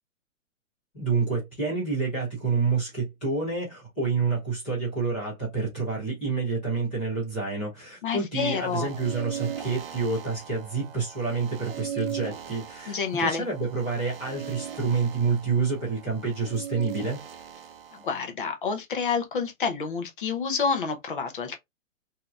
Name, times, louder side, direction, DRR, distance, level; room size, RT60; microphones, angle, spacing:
voice 1, 0.9-17.2, right 4 dB, 5° left, 0.6 m, -28 dB
voice 2, 8.0-8.9 12.9-13.4 17.9-21.6, left 5 dB, 40° left, 0.8 m, -28 dB
sound 1, 8.4-18.2, right 9 dB, 45° right, 0.6 m, -39 dB
3.6 x 2.8 x 2.3 m
hypercardioid pair, 175°, 40 cm